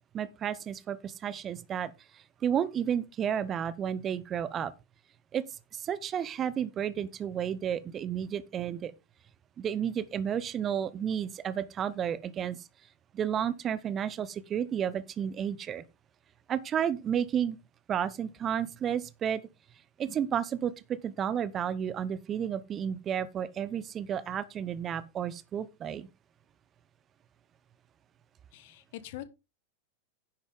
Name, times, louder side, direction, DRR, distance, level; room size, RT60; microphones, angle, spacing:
voice 1, 0.1-4.7 5.3-5.4 5.7-8.9 9.6-12.7 13.1-15.8 16.5-17.6 17.9-19.4 20.0-26.1, right 9 dB, 25° right, 0.8 m, -32 dB
voice 2, 28.5-29.2, left 14 dB, 50° left, 1.3 m, -43 dB
10.5 x 8.2 x 3.6 m
figure-of-eight pair, 90°, 0 cm